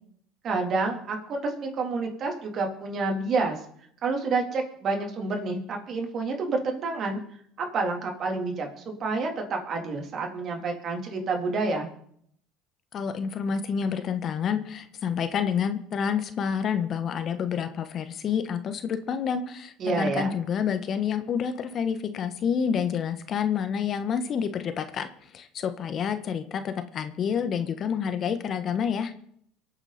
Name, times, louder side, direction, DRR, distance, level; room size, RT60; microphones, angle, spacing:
voice 1, 0.4-3.6 4.0-7.2 7.6-11.9 19.8-20.4, right 3 dB, 45° right, 2 dB, 3.8 m, -29 dB
voice 2, 12.9-25.1 25.3-29.1, left 7 dB, 45° left, 9 dB, 1.5 m, -28 dB
23.5 x 8.9 x 4.4 m, 0.66 s
supercardioid pair, 85°, 0 cm